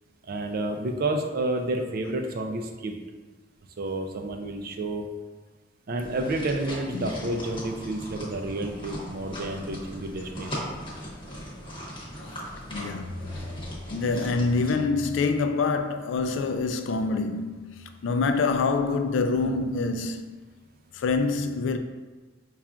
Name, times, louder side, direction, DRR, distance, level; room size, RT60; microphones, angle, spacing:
voice 1, 0.3-2.9 3.8-5.0 5.9-10.7, right 2 dB, 55° right, 0.4 m, -30 dB
sound 1, 6.0-14.8, equal, 30° left, 1.0 m, -39 dB
voice 2, 12.7-13.2 13.9-20.4 20.9-21.8, left 4 dB, 85° left, 0.3 m, -26 dB
5.6 x 2.4 x 2.3 m
head